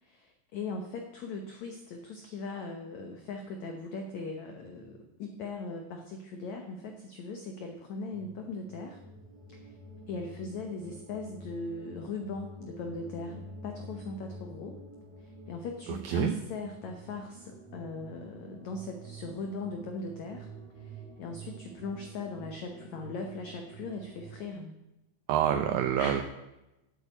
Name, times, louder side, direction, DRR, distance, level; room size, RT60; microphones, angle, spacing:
voice 1, 0.0-9.0 9.5-9.7 10.1-14.8 15.2-20.5 20.8-24.7 26.0-26.2, left 3 dB, 80° left, 4 dB, 1.6 m, -39 dB
sound 1, 8.1-24.5, right 2 dB, ahead, 2.1 m, -49 dB
voice 2, 16.0-16.3 25.3-26.2, right 10 dB, 80° right, 8 dB, 2.1 m, -26 dB
9.4 x 8.2 x 8.3 m, 0.95 s
omnidirectional pair, 4.7 m